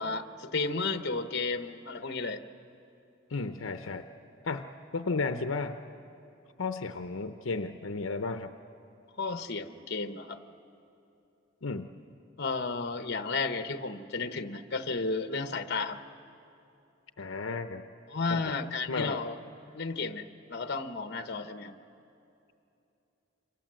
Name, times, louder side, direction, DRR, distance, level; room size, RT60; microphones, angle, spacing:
voice 1, 0.0-2.4 9.2-10.4 12.4-16.0 18.1-19.4 19.7-21.8, left 3 dB, 55° left, 9 dB, 1.1 m, -33 dB
voice 2, 3.3-4.1 4.4-4.7 4.9-5.8 6.6-8.5 11.6-11.9 17.2-17.9 18.3-18.6 18.9-19.2, left 3 dB, 80° left, 8 dB, 0.8 m, -33 dB
27.5 x 26.0 x 7.7 m, 2.8 s
head